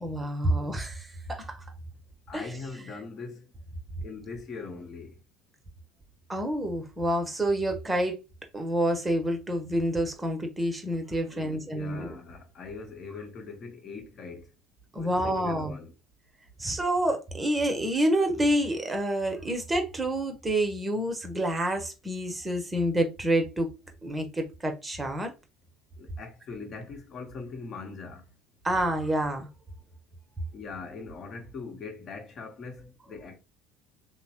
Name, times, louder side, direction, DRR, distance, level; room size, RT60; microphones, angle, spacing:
voice 1, 0.0-1.6 2.3-2.5 6.3-8.1 8.5-12.1 14.9-15.7 16.6-23.7 24.0-25.3 28.6-29.5, right 1 dB, 20° right, 0.8 m, -28 dB
voice 2, 2.3-3.4 4.0-5.1 11.3-14.4 15.0-15.9 26.0-28.2 30.5-33.4, left 4 dB, 50° left, 0.9 m, -41 dB
3.0 x 2.0 x 2.9 m
hypercardioid pair, 70°, 0 cm